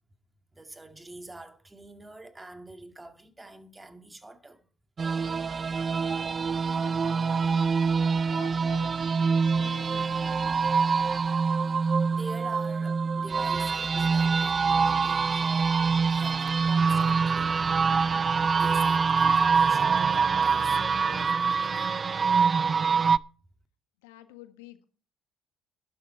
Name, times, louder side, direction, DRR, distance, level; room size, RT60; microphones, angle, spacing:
voice 1, 0.5-4.7 12.1-17.6 18.5-20.8 21.1-21.9, right 2 dB, 15° right, 2.4 m, -46 dB
sound 1, 5.0-23.2, right 5 dB, 40° right, 0.5 m, -25 dB
voice 2, 6.6-7.7 8.3-10.7 24.0-24.9, left 15 dB, 85° left, 1.5 m, -49 dB
12.0 x 11.5 x 4.5 m
hypercardioid pair, 65°, 0 cm